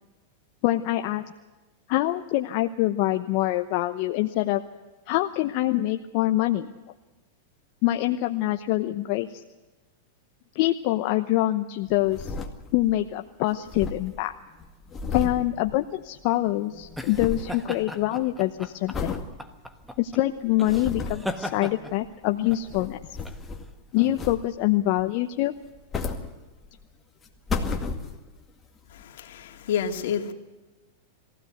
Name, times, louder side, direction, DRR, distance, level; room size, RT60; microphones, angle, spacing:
voice 1, 0.6-1.3 1.9-4.6 5.1-6.7 7.8-9.4 10.5-12.3 12.7-14.3 15.1-19.2 20.0-23.0 23.9-25.5, left 15 dB, 50° left, 6 dB, 0.9 m, -25 dB
sound 1, 11.9-13.0 13.3-13.4 13.5-16.3 16.6-17.6 18.0-18.4 18.9-19.3 19.8-19.9 20.5-21.3 22.3-23.8 24.2-24.7 25.6-26.8 27.2-28.4 29.0-29.1, left 4 dB, 20° left, 2.1 m, -33 dB
sound 2, 16.0-25.1, equal, ahead, 1.4 m, -39 dB
voice 2, 28.9-30.3, left 8 dB, 70° left, 4 dB, 2.4 m, -29 dB
22.0 x 16.0 x 8.0 m, 1.2 s
hypercardioid pair, 130°, 0 cm